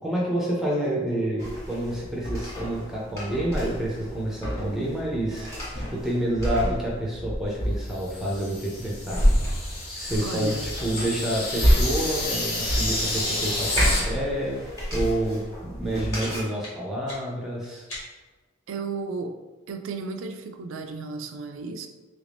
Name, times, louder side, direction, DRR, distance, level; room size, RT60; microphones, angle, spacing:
voice 1, 0.0-5.5 5.7-9.2 9.9-14.6 14.9-17.8, right 1 dB, ahead, -4 dB, 0.5 m, -28 dB
sound 1, 1.4-16.4, equal, 15° left, 1.0 m, -29 dB
sound 2, 7.9-14.0, left 2 dB, 45° left, 0.7 m, -30 dB
voice 2, 10.2-10.6 18.7-19.4 19.7-21.9, right 4 dB, 65° right, 6 dB, 0.3 m, -33 dB
sound 3, 16.1-18.4, equal, 80° left, 1.4 m, -43 dB
3.2 x 2.5 x 3.3 m, 1.3 s
head